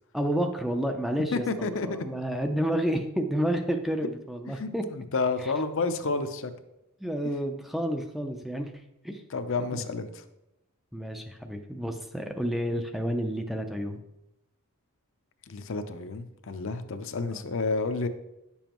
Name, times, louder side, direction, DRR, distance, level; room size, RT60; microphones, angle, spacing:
voice 1, 0.1-4.9 5.4-5.5 7.0-8.7 9.0-9.2 9.7-9.8 10.9-14.0 17.2-17.4, equal, ahead, 5 dB, 0.4 m, -30 dB
voice 2, 1.3-2.0 4.5-6.5 9.3-10.1 15.5-18.1, left 3 dB, 60° left, 9 dB, 0.6 m, -30 dB
10.0 x 7.1 x 3.0 m, 0.88 s
head